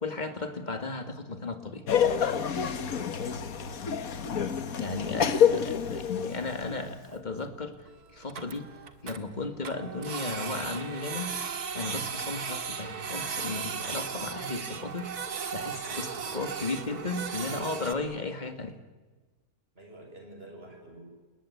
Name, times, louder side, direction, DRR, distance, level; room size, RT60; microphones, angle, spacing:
voice 1, 0.0-1.9 4.8-7.8 8.1-8.6 9.0-11.3 11.7-15.1 15.5-18.8, left 3 dB, 30° left, 8 dB, 2.3 m, -35 dB
Laughter, 1.9-6.9, left 8 dB, 70° left, 1.8 m, -28 dB
voice 2, 3.6-4.1 4.5-5.3 19.7-21.0, right 1 dB, 40° right, 3 dB, 6.7 m, -50 dB
Printer, 6.4-6.5 6.6-6.7 7.1-7.2 7.5-7.6 7.9-8.0 8.2-9.2 9.6-17.9, right 6 dB, 90° right, 2.3 m, -36 dB
28.5 x 20.0 x 9.9 m, 1.3 s
omnidirectional pair, 1.6 m